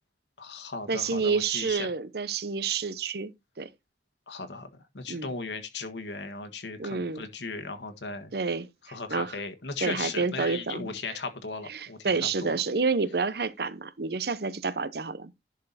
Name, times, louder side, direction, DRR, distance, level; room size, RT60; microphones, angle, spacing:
voice 1, 0.4-1.9 4.3-4.7 4.9-8.3 8.8-12.6, left 4 dB, 80° left, 1.5 m, -37 dB
voice 2, 0.9-3.7 5.1-5.3 6.8-7.2 8.3-8.7 9.1-9.3 9.8-10.9 11.7-15.4, right 4 dB, 60° right, 0.7 m, -29 dB
11.0 x 4.6 x 4.1 m
head